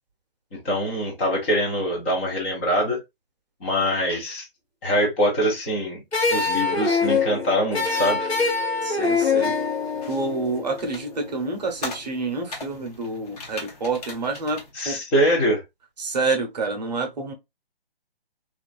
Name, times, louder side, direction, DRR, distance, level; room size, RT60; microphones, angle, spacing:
voice 1, 0.5-3.0 3.6-4.4 4.8-6.0 6.3-8.3 14.8-15.6, equal, 10° left, 0.6 m, -23 dB
sound 1, 6.1-11.2, left 4 dB, 85° left, 1.1 m, -24 dB
voice 2, 8.8-9.5 10.1-15.0 16.0-17.3, right 3 dB, 45° right, 0.8 m, -28 dB
sound 2, 9.4-14.7, left 2 dB, 40° left, 1.1 m, -40 dB
3.1 x 2.5 x 2.3 m
figure-of-eight pair, 140°, 31 cm